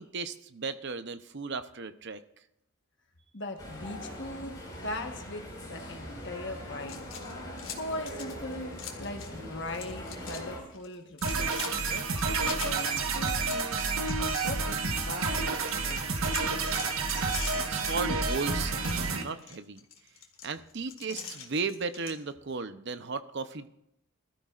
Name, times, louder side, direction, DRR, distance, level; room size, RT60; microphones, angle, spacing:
voice 1, 0.0-2.2 17.7-18.9 19.2-19.8 20.4-23.7, right 4 dB, 55° right, 11 dB, 0.7 m, -35 dB
voice 2, 3.3-4.5 4.8-7.0 7.7-13.8 14.1-16.2, left 1 dB, 55° left, 4 dB, 1.3 m, -40 dB
sound 1, 3.6-10.6, equal, 20° left, 5.0 m, -42 dB
sound 2, 6.8-9.4 9.7-10.4 10.7-15.2 15.5-22.2, left 8 dB, 75° left, 1.8 m, -44 dB
sound 3, 11.2-19.2, right 4 dB, 85° right, 1.4 m, -29 dB
21.0 x 13.0 x 2.5 m, 0.79 s
head